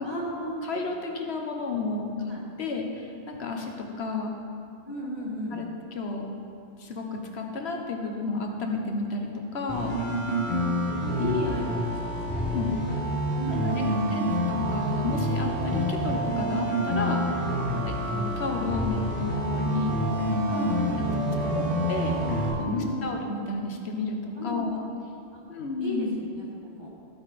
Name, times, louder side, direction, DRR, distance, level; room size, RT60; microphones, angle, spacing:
voice 1, 0.0-0.6 2.3-2.4 4.8-5.7 10.2-10.7 11.1-12.6 13.3-14.2 17.7-17.9 20.5-21.7 22.6-23.1 24.4-24.6 25.3-25.4 25.8-26.9, equal, 25° right, -4 dB, 1.9 m, -34 dB
voice 2, 0.6-2.1 2.6-4.4 5.5-6.3 6.8-9.9 11.0-11.3 12.3-12.8 13.5-17.5 17.8-20.0 21.5-21.6 21.9-24.9 25.5-26.1, left 3 dB, 85° left, 2 dB, 1.3 m, -32 dB
sound 1, 9.7-22.5, equal, 10° left, 3.1 m, -28 dB
13.5 x 8.4 x 4.2 m, 2.5 s
omnidirectional pair, 1.1 m